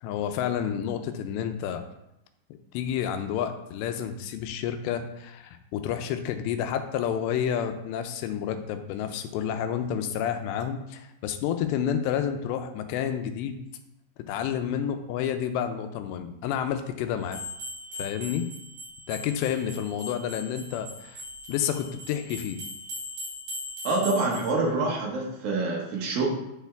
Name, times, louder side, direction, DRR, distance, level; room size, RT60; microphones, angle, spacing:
voice 1, 0.0-1.8 2.7-13.6 14.3-17.4 18.0-18.5 19.1-21.2 21.5-22.6, left 9 dB, 90° left, 8 dB, 2.8 m, -30 dB
sound 1, 17.3-24.5, left 1 dB, 50° right, 3.8 m, -40 dB
voice 2, 23.8-26.3, right 3 dB, 65° right, -2 dB, 2.8 m, -26 dB
10.5 x 4.6 x 3.4 m, 0.88 s
omnidirectional pair, 4.9 m